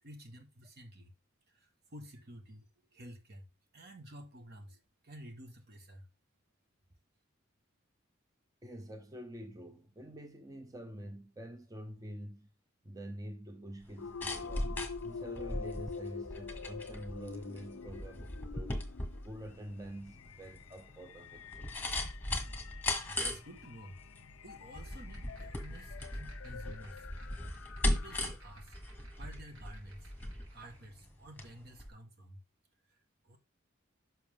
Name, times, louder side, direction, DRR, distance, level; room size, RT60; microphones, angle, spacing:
voice 1, 0.0-1.1 1.5-3.5 3.7-6.1 22.3-22.5 23.1-24.0 24.4-27.1 27.5-28.7 29.2-30.1 30.5-32.4 32.8-33.4, right 1 dB, 50° right, 1.5 m, -51 dB
voice 2, 8.6-12.5 12.8-14.7 15.0-18.8 19.2-21.7, right 1 dB, 15° right, 0.7 m, -47 dB
sound 1, 13.8-31.5 31.8-31.9, left 1 dB, 10° left, 1.5 m, -38 dB
sound 2, 14.0-28.5, left 5 dB, 75° left, 0.5 m, -47 dB
sound 3, 25.0-31.0, right 3 dB, 80° right, 4.3 m, -63 dB
10.5 x 6.2 x 3.6 m
head